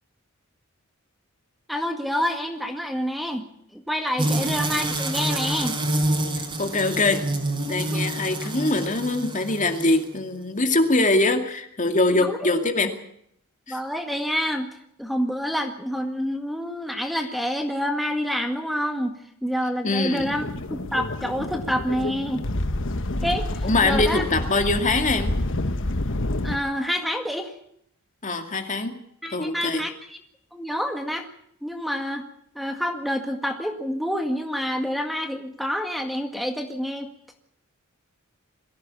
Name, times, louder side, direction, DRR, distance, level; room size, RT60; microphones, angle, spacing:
voice 1, 1.7-3.5 3.7-5.8 7.8-8.0 8.6-8.8 12.2-12.5 13.7-14.7 15.0-22.4 23.2-24.2 26.4-27.5 29.2-30.2 30.5-31.3 31.6-32.3 32.6-37.1, equal, ahead, 5 dB, 1.9 m, -28 dB
sound 1, 4.2-10.2, right 1 dB, 25° right, 4.4 m, -27 dB
voice 2, 6.4-7.2 7.7-12.9 13.7-13.8 19.8-20.4 23.6-25.3 28.2-29.0 29.3-29.9, left 2 dB, 35° left, 6 dB, 2.4 m, -23 dB
sound 2, 20.2-26.6, left 1 dB, 60° left, 1.3 m, -28 dB
22.5 x 16.0 x 8.5 m, 0.71 s
head